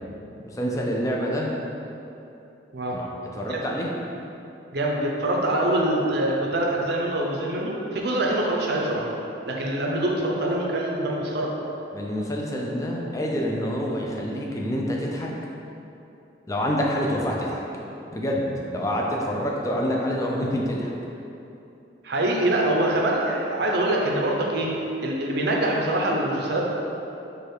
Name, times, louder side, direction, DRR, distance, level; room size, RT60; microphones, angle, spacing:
voice 1, 0.4-1.5 2.9-3.1 3.3-3.9 11.9-15.3 16.5-17.6 18.1-20.9, equal, 20° left, -2 dB, 0.5 m, -27 dB
voice 2, 4.7-9.1 9.5-11.5 22.0-24.7 25.0-26.6, right 1 dB, 60° right, -1 dB, 0.6 m, -24 dB
4.9 x 2.4 x 4.5 m, 2.9 s
head